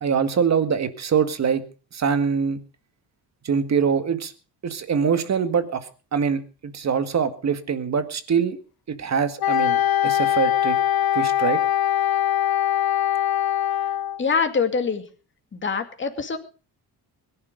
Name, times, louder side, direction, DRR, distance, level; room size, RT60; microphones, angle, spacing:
voice 1, 0.0-1.6 1.9-2.6 3.4-4.3 4.6-5.9 6.1-8.6 8.9-10.8 11.1-11.6, right 6 dB, 40° right, 10 dB, 1.9 m, -23 dB
Wind instrument woodwind instrument, 9.4-14.2, left 11 dB, 65° left, 0.9 m, -22 dB
voice 2, 14.2-15.0 15.5-16.4, left 5 dB, 30° left, 6 dB, 2.4 m, -24 dB
21.5 x 11.0 x 5.2 m, 0.37 s
cardioid pair, 140°, 39 cm